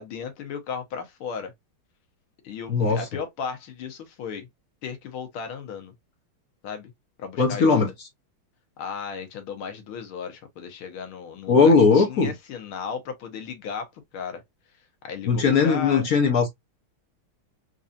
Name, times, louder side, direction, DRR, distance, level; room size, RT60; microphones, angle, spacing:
voice 1, 0.0-1.5 2.4-4.5 4.8-5.9 6.6-6.9 7.2-7.8 8.8-14.4 15.0-16.1, left 6 dB, 80° left, 1.8 m, -35 dB
voice 2, 2.7-3.0 7.4-7.9 11.5-12.3 15.3-16.5, left 4 dB, 55° left, 1.1 m, -19 dB
4.6 x 2.7 x 2.5 m
omnidirectional pair, 2.3 m